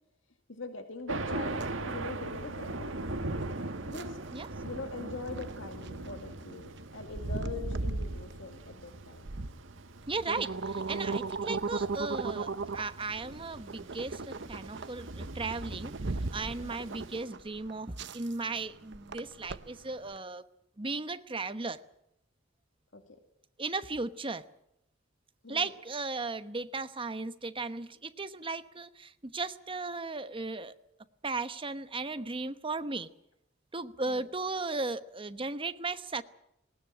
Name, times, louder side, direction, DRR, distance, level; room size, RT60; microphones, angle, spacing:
voice 1, 0.5-3.0 3.9-4.2 4.6-9.3 16.6-16.9 22.9-23.0 25.4-25.7 34.1-34.3, left 3 dB, 70° left, 6 dB, 2.4 m, -42 dB
Thunder, 1.1-17.2, right 2 dB, 85° right, 1.6 m, -41 dB
sound 1, 1.3-20.2, right 3 dB, 65° right, 0.9 m, -38 dB
voice 2, 10.1-20.4 20.8-21.8 23.6-24.4 25.5-30.7 31.2-33.1 33.7-36.2, right 3 dB, 25° right, 11 dB, 1.1 m, -36 dB
19.5 x 19.5 x 8.8 m, 0.81 s
head